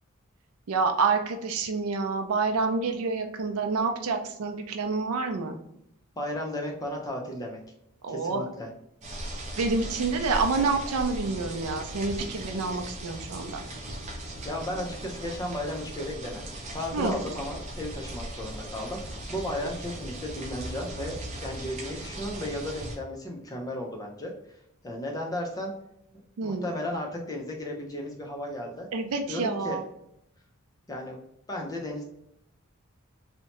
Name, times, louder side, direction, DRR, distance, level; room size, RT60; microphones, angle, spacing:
voice 1, 0.7-5.6 8.0-8.4 9.6-13.6 16.9-17.2 26.4-26.7 28.9-29.8, right 4 dB, 85° right, 5 dB, 0.4 m, -28 dB
voice 2, 6.2-7.6 8.1-8.7 14.4-19.0 19.3-24.3 24.8-25.7 26.4-28.9 29.3-29.8 30.9-31.2 31.5-32.0, left 1 dB, 15° left, 0 dB, 0.5 m, -34 dB
sound 1, 9.0-23.0, right 1 dB, 30° right, 0.5 m, -38 dB
2.7 x 2.1 x 2.9 m, 0.78 s
head